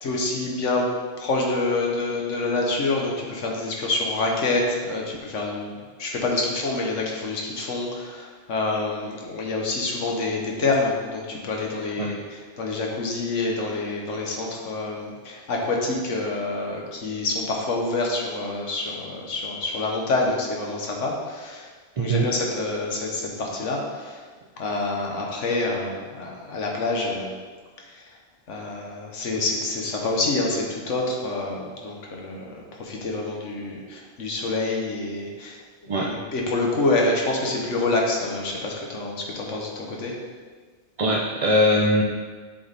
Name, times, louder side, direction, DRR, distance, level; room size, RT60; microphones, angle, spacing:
voice 1, 0.0-0.9 1.2-21.7 22.0-24.2 24.6-27.3 28.0-28.1 28.5-35.6 35.8-40.1, left 2 dB, 90° left, -1 dB, 1.4 m, -27 dB
voice 2, 22.0-22.3 35.9-36.1 41.0-42.0, equal, 50° right, -2 dB, 0.4 m, -21 dB
7.6 x 4.1 x 3.3 m, 1.5 s
omnidirectional pair, 1.2 m